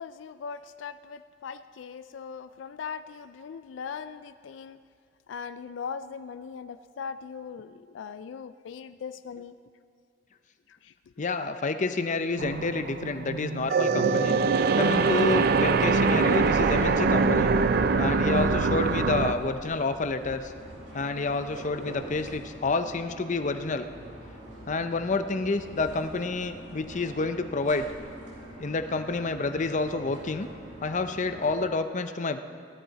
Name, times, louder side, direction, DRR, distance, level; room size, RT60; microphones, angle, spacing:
voice 1, 0.0-4.8 5.3-9.5 10.8-10.9, left 6 dB, 85° left, 11 dB, 0.4 m, -39 dB
voice 2, 11.2-14.4 14.8-17.5 18.0-20.5 20.9-23.9 24.7-27.9 28.6-30.5 30.8-32.4, left 3 dB, 40° left, 9 dB, 0.6 m, -29 dB
sound 1, 12.4-19.3, right 4 dB, 55° right, 0.5 m, -23 dB
sound 2, 15.5-31.6, right 1 dB, 90° right, 4.4 m, -45 dB
16.5 x 12.5 x 4.1 m, 2.2 s
head